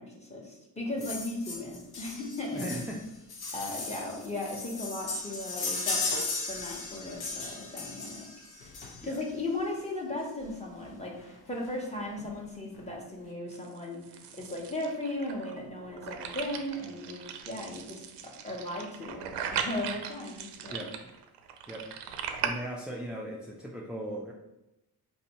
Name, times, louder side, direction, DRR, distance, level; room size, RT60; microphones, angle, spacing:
voice 1, 0.0-2.7 3.5-6.1 6.5-8.3 9.0-14.0 14.3-20.8, left 2 dB, 15° left, -2 dB, 1.0 m, -37 dB
sound 1, 1.0-9.3 10.4-10.5 10.8-10.9 11.2-11.3 11.7-12.3 12.7-12.8, left 3 dB, 60° left, 1.0 m, -36 dB
voice 2, 2.5-3.1 9.0-9.2 20.7-20.9 21.7-21.9 22.4-24.3, equal, ahead, -2 dB, 0.4 m, -38 dB
sound 2, 13.5-22.5, right 8 dB, 80° right, 0.5 m, -38 dB
2.6 x 2.6 x 4.2 m, 0.93 s
cardioid pair, 80°, 42 cm